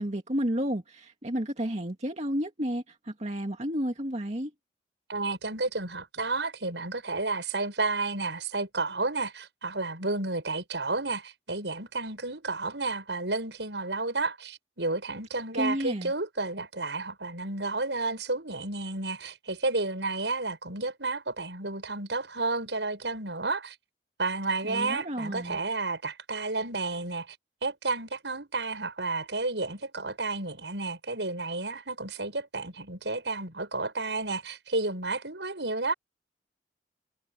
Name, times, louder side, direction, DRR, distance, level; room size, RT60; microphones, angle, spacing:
voice 1, 0.0-4.5 15.5-16.1 24.6-25.6, equal, 40° right, 2.2 m, -31 dB
voice 2, 5.1-23.8 24.2-27.4 27.6-35.9, right 3 dB, 85° right, 7.2 m, -31 dB
head